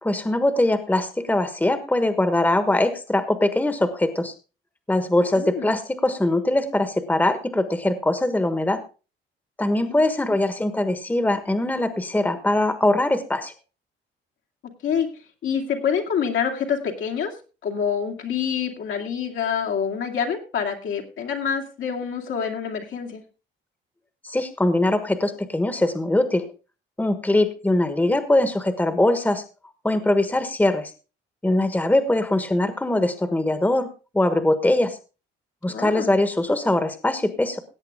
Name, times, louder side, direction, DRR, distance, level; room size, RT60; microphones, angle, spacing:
voice 1, 0.0-4.3 4.9-8.8 9.6-13.5 24.2-26.5 27.0-29.4 29.8-30.9 31.4-33.9 34.1-35.0 35.6-37.6, left 1 dB, 10° left, 10 dB, 1.3 m, -22 dB
voice 2, 5.3-5.7 9.8-10.0 14.8-15.1 15.4-17.3 17.6-23.2 35.7-36.2, left 7 dB, 75° left, 1 dB, 2.6 m, -26 dB
17.5 x 8.1 x 3.6 m, 0.33 s
cardioid pair, 90°, 20 cm